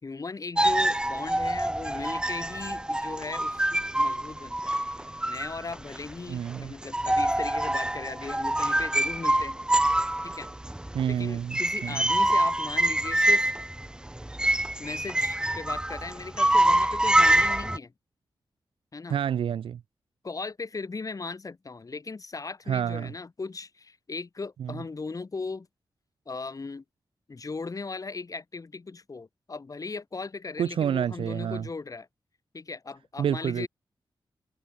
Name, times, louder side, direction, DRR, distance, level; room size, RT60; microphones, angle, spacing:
voice 1, 0.0-9.6 10.2-10.5 11.1-13.4 14.8-17.9 18.9-19.2 20.2-25.7 26.3-26.8 27.3-32.1 32.5-33.7, left 4 dB, 40° left, 3.0 m, -38 dB
sound 1, 0.6-6.1 6.5-6.6 6.8-17.8, right 1 dB, 10° right, 1.2 m, -25 dB
voice 2, 6.3-6.7 10.9-12.0 19.1-19.8 22.7-23.1 24.6-24.8 30.6-31.7 33.2-33.7, right 9 dB, 90° right, 0.4 m, -28 dB
wide cardioid pair, 90°, 9 cm